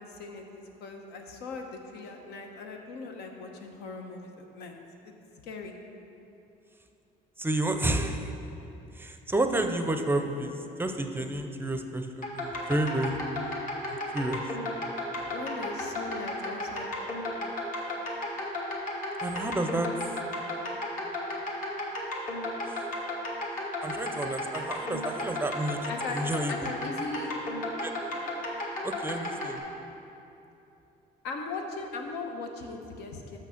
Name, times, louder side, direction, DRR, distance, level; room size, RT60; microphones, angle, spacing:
voice 1, 0.0-4.8 5.0-5.1 5.4-5.7 15.3-16.9 25.9-26.2 26.5-27.3 31.2-33.4, left 3 dB, 80° left, 3 dB, 0.9 m, -39 dB
voice 2, 7.4-8.3 9.0-13.2 13.9-14.4 19.2-19.9 22.7-22.9 23.8-26.7 27.8-27.9 28.8-29.6, right 1 dB, 15° right, 6 dB, 0.5 m, -30 dB
sound 1, 12.2-29.6, left 1 dB, 55° left, 1.6 m, -34 dB
6.5 x 6.0 x 5.8 m, 2.8 s
cardioid pair, 110°, 17 cm